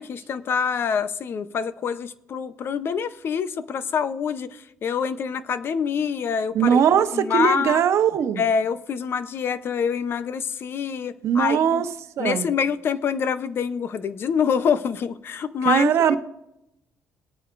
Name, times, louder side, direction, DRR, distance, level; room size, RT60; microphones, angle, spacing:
voice 1, 0.0-6.8 7.1-7.8 8.4-11.8 12.2-16.2, left 6 dB, 45° left, 13 dB, 0.7 m, -26 dB
voice 2, 6.5-8.4 11.2-11.9 12.2-12.5 15.6-16.2, right 8 dB, 60° right, 10 dB, 1.0 m, -20 dB
20.5 x 9.1 x 2.6 m, 0.83 s
cardioid pair, 135°, 5 cm